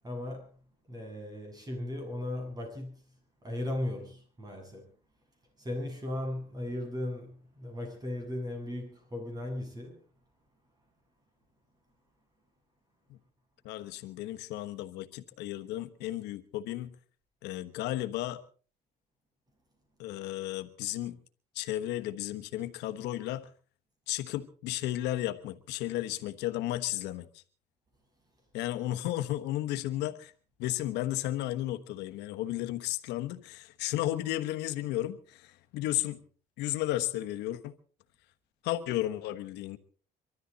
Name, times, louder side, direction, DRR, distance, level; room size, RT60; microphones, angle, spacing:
voice 1, 0.0-0.5 0.9-3.0 3.4-4.9 5.6-10.0, left 1 dB, 25° right, 7.9 m, -37 dB
voice 2, 13.6-16.9 17.4-18.4 20.0-21.2 21.5-23.5 24.1-27.4 28.5-30.3 30.6-36.2 36.6-37.7 38.6-39.8, left 14 dB, 90° left, 1.2 m, -33 dB
25.0 x 13.0 x 4.1 m
cardioid pair, 110°, 17 cm